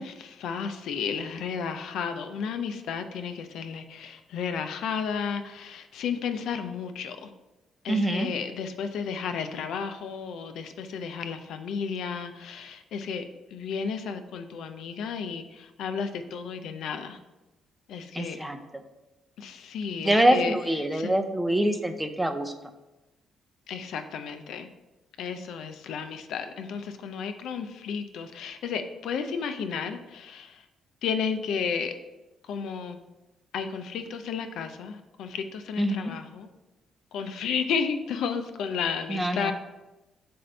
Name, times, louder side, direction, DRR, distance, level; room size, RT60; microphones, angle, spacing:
voice 1, 0.0-7.3 7.8-13.3 13.5-17.2 17.9-18.4 19.4-20.6 20.9-21.1 23.7-24.7 25.2-30.6 31.0-31.9 32.4-33.0 33.5-36.5 37.1-39.5, left 6 dB, 80° left, 8 dB, 0.5 m, -33 dB
voice 2, 7.9-8.3 18.1-18.6 20.0-22.5 35.8-36.1 39.1-39.5, right 1 dB, 5° right, 7 dB, 0.6 m, -25 dB
7.5 x 2.6 x 5.3 m, 1.0 s
cardioid pair, 90°, 0 cm